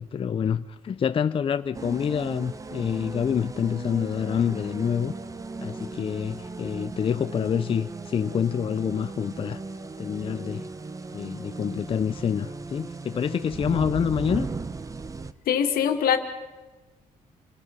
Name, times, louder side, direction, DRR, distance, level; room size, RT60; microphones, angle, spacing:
voice 1, 0.0-5.1 5.6-9.6 10.0-10.7 11.1-14.5, left 7 dB, 35° left, 0.6 m, -27 dB
sound 1, 1.7-15.3, right 3 dB, 20° right, 0.9 m, -37 dB
voice 2, 15.5-16.2, left 8 dB, 85° left, 2.3 m, -22 dB
28.0 x 19.0 x 5.5 m
cardioid pair, 130°, 15 cm